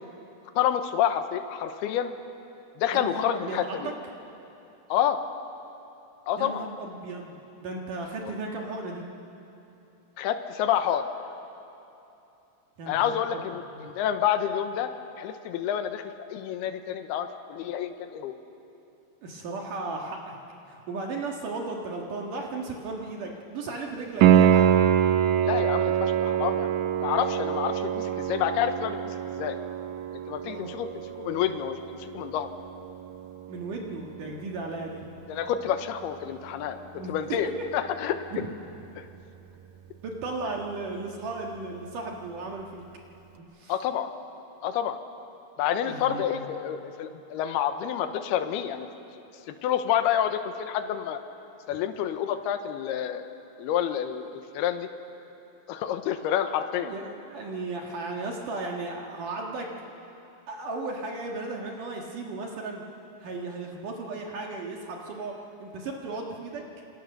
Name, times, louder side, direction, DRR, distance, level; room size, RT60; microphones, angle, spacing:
voice 1, 0.6-2.1 2.8-3.9 4.9-5.2 6.3-6.7 8.2-8.3 10.2-11.1 12.9-14.9 15.2-16.0 16.3-18.4 25.4-26.7 27.0-29.6 30.3-32.5 35.3-38.2 39.0-39.1 43.7-44.1 44.6-45.0 45.6-48.9 49.5-51.2 51.7-53.2 53.6-54.9 55.7-56.9, left 10 dB, 85° left, 8 dB, 3.0 m, -28 dB
voice 2, 2.9-3.9 6.4-9.0 12.8-13.4 13.7-13.9 19.2-20.4 20.7-24.7 30.4-30.7 33.5-35.1 36.9-37.4 38.3-38.5 40.0-42.9 43.4-43.7 45.8-46.4 51.7-51.8 56.8-59.7 60.5-62.8 63.2-65.3 65.6-66.6, right 3 dB, 60° right, 0 dB, 3.0 m, -35 dB
Piano, 24.2-34.9 38.2-38.3, right 10 dB, 90° right, 1.6 m, -25 dB
28.0 x 25.5 x 6.7 m, 2.8 s
omnidirectional pair, 4.5 m